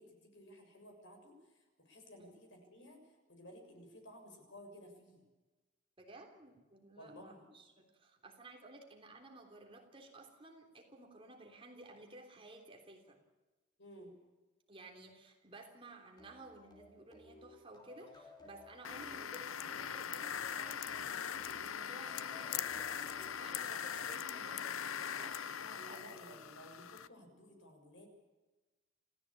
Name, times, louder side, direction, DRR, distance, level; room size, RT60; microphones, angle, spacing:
voice 1, 0.0-5.2 7.0-7.5 13.8-14.1 25.6-28.1, equal, 60° left, 3 dB, 6.7 m, -55 dB
voice 2, 6.0-13.2 14.7-25.6 25.9-26.0 26.3-26.4, right 2 dB, 25° right, 2 dB, 3.4 m, -55 dB
sound 1, 16.2-25.4, left 1 dB, 20° left, 3.6 m, -59 dB
sound 2, 18.8-27.1, left 8 dB, 80° left, 0.7 m, -41 dB
28.0 x 16.0 x 8.7 m, 1.2 s
head